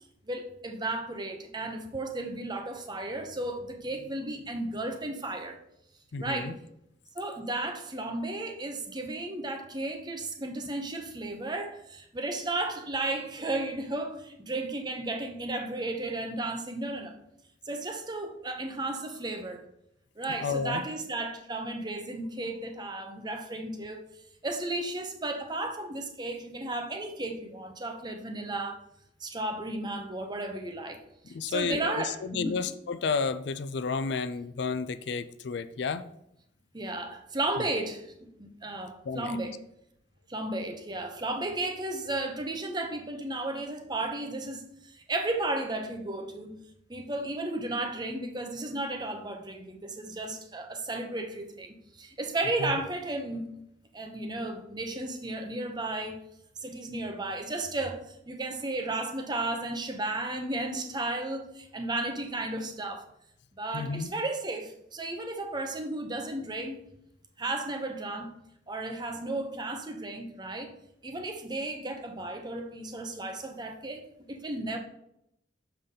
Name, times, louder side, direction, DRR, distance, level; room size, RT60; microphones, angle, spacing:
voice 1, 0.3-5.6 6.2-6.6 7.1-17.2 17.7-19.6 20.2-24.1 24.4-28.8 29.2-32.6 36.7-39.5 40.3-46.6 46.9-53.5 53.9-56.2 56.6-63.1 63.6-66.8 67.4-68.3 68.7-70.7 71.0-74.8, right 2 dB, 20° right, 0.8 m, -34 dB
voice 2, 6.1-6.5 20.4-20.8 31.3-36.0 37.6-37.7 39.0-39.4 52.6-52.8 63.7-64.1, left 5 dB, 60° left, 0.4 m, -31 dB
6.7 x 5.7 x 3.8 m
head